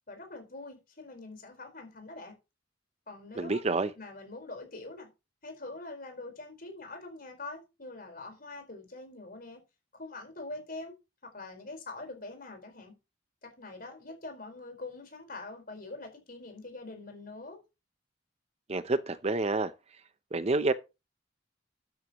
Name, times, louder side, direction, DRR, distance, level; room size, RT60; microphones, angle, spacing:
voice 1, 0.1-2.3 3.1-3.6 4.0-5.1 5.4-9.6 9.9-10.9 11.2-12.9 13.4-17.6, left 2 dB, 50° left, 4.5 m, -44 dB
voice 2, 3.4-3.9 18.7-19.7 20.3-20.7, right 3 dB, 35° right, 0.6 m, -28 dB
12.5 x 9.5 x 3.0 m
head